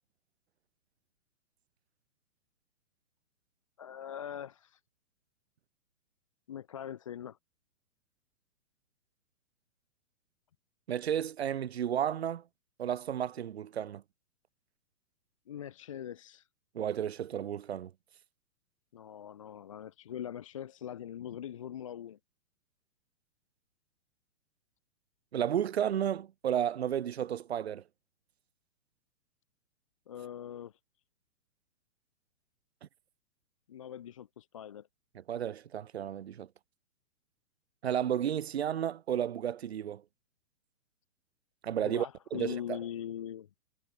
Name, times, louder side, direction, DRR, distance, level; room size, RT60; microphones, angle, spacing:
voice 1, 3.8-4.8 6.5-7.4 15.5-16.5 18.9-22.2 30.1-30.8 33.7-34.9 41.8-43.5, left 10 dB, 20° left, 1.0 m, -42 dB
voice 2, 10.9-12.4 12.8-14.0 16.7-17.9 25.3-27.8 35.3-36.5 37.8-40.0 41.6-42.1 42.3-42.8, right 9 dB, 40° right, 2.4 m, -32 dB
hypercardioid pair, 180°, 47 cm